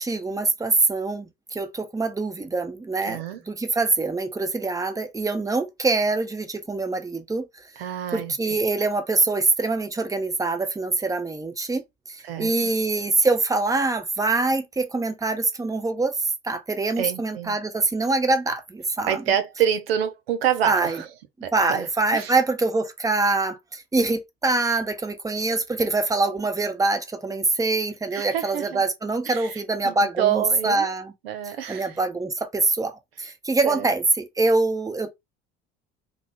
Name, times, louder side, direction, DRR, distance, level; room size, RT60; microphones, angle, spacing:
voice 1, 0.0-7.5 8.1-11.8 12.1-16.2 16.4-19.2 20.6-21.0 21.5-31.1 31.7-32.9 33.2-35.1, right 3 dB, 10° right, 0.8 m, -24 dB
voice 2, 3.0-3.4 7.8-8.3 12.2-12.7 17.0-17.6 19.1-21.1 21.4-22.3 28.1-28.8 29.3-30.9 31.2-32.0 33.6-33.9, right 9 dB, 80° right, 0.7 m, -27 dB
3.6 x 2.2 x 3.5 m
hypercardioid pair, 65°, 30 cm